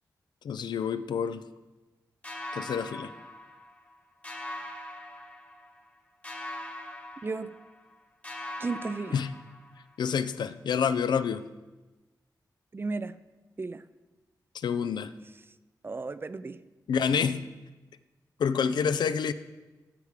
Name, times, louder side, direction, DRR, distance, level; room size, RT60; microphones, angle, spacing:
voice 1, 0.4-1.4 2.5-3.1 9.1-9.3 10.0-11.4 14.5-15.1 16.9-17.5 18.4-19.3, left 7 dB, 90° left, 13 dB, 0.4 m, -28 dB
sound 1, 2.2-4.0 4.2-5.9 6.2-8.0 8.2-9.9, left 1 dB, 20° left, 1.0 m, -42 dB
voice 2, 7.2-7.6 8.6-9.2 12.7-13.2 13.6-13.8 15.8-16.7, right 3 dB, 30° right, 15 dB, 0.4 m, -34 dB
13.5 x 4.8 x 5.1 m, 1.2 s
wide cardioid pair, 85°, 7 cm